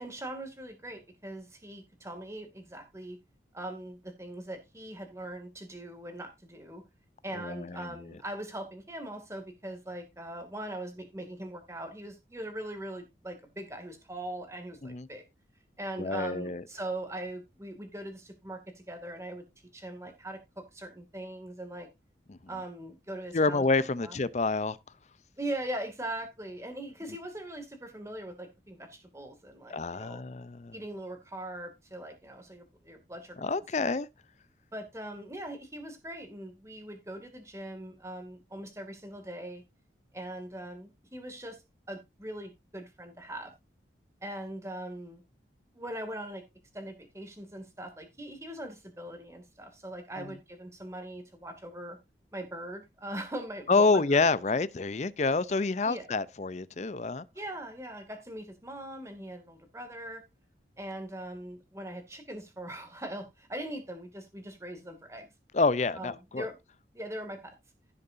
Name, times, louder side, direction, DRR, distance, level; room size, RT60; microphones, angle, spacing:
voice 1, 0.0-3.2 3.5-6.8 7.2-15.2 15.8-19.4 19.7-20.4 20.7-21.9 22.5-23.6 24.0-24.2 25.4-30.2 30.7-33.5 33.8-34.0 34.7-39.6 40.1-41.6 41.9-43.5 44.2-45.2 45.7-46.4 46.7-52.0 52.3-54.3 55.8-56.1 57.3-60.2 60.8-65.3 66.0-66.6 66.9-67.5, right 1 dB, 15° right, 2.3 m, -41 dB
voice 2, 7.3-7.9 14.8-15.1 16.0-16.6 22.3-22.4 23.3-24.8 29.7-30.7 33.4-34.1 50.2-50.3 53.7-57.2 65.5-66.5, left 3 dB, 40° left, 0.5 m, -28 dB
16.0 x 6.8 x 2.6 m
head